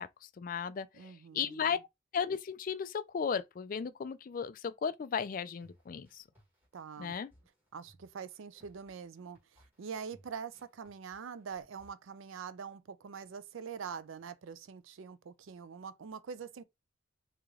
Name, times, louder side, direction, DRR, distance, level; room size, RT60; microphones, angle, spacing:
voice 1, 0.0-1.8 2.1-6.2 7.0-7.3, left 6 dB, 45° left, 0.3 m, -35 dB
voice 2, 0.9-1.7 6.7-7.2 7.7-9.4 9.8-16.6, right 6 dB, 80° right, 0.4 m, -44 dB
sound 1, 5.3-11.9, equal, 10° right, 1.5 m, -65 dB
3.1 x 2.9 x 3.6 m
head